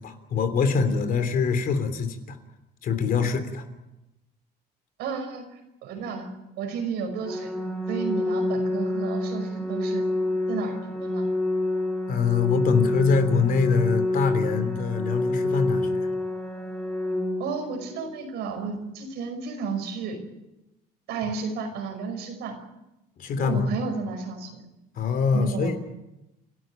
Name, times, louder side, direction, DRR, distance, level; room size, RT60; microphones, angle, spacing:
voice 1, 0.0-2.4 2.8-3.6 12.1-16.1 23.2-23.8 24.9-25.8, left 5 dB, 60° left, 9 dB, 3.3 m, -24 dB
voice 2, 5.0-6.3 6.6-7.5 7.9-10.0 10.5-11.3 17.4-20.2 21.1-22.6 23.4-24.6 25.3-25.8, right 5 dB, 85° right, 4 dB, 5.6 m, -32 dB
Organ, 7.2-18.2, left 1 dB, 5° left, 4.2 m, -28 dB
30.0 x 13.0 x 9.0 m, 0.96 s
cardioid pair, 110°, 17 cm